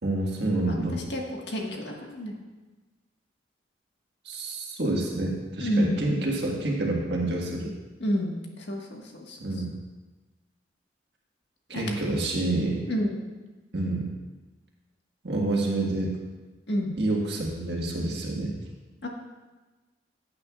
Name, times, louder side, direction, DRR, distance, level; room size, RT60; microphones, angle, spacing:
voice 1, 0.0-1.0 4.2-7.7 9.4-9.7 11.7-12.8 13.7-14.1 15.2-16.1 17.0-18.5, right 2 dB, 70° right, -2 dB, 1.6 m, -28 dB
voice 2, 0.7-2.3 5.6-6.1 8.0-9.4 11.7-11.9 12.8-13.2 16.7-17.0 19.0-19.1, equal, 75° left, 0 dB, 1.6 m, -29 dB
15.0 x 8.8 x 2.4 m, 1.2 s
head